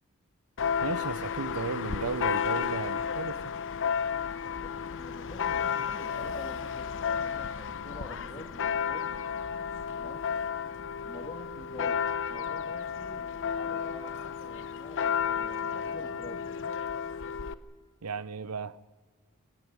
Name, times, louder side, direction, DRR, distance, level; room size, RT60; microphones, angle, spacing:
Church bell, 0.6-17.5, left 7 dB, 60° left, 0.8 m, -32 dB
voice 1, 0.8-3.5 18.0-18.8, right 4 dB, 85° right, 0.7 m, -35 dB
voice 2, 4.5-9.1 10.0-10.2 11.0-16.5, left 1 dB, 15° left, 2.8 m, -47 dB
24.0 x 16.5 x 9.7 m
head